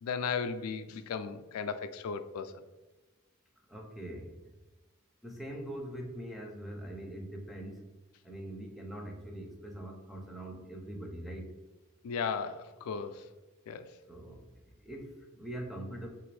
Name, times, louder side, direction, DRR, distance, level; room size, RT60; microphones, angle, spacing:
voice 1, 0.0-2.5 12.0-13.2 13.7-13.8, left 6 dB, 90° left, 11 dB, 0.3 m, -35 dB
voice 2, 3.7-4.4 5.2-7.9 8.2-11.5 14.1-14.5 14.8-16.1, right 1 dB, ahead, -1 dB, 0.4 m, -42 dB
3.4 x 2.5 x 3.1 m, 1.1 s
head